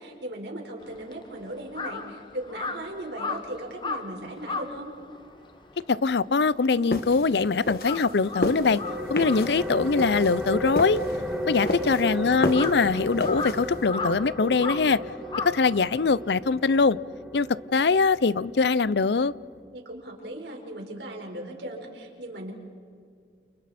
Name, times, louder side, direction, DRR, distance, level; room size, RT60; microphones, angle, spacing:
voice 1, 0.0-4.9 11.6-12.1 19.7-22.5, right 1 dB, 85° right, 2 dB, 4.6 m, -38 dB
Crow, 0.8-7.4 7.7-16.3, left 4 dB, 25° left, 1.0 m, -37 dB
voice 2, 5.9-8.8 9.1-11.0 11.5-15.0 15.4-17.0 17.3-17.5 17.7-19.3, left 4 dB, 80° left, 19 dB, 0.6 m, -22 dB
sound 1, 6.9-13.8, left 1 dB, 60° left, 1.9 m, -32 dB
sound 2, 8.2-19.6, left 1 dB, 5° right, 2.2 m, -35 dB
29.5 x 29.5 x 4.3 m, 2.3 s
head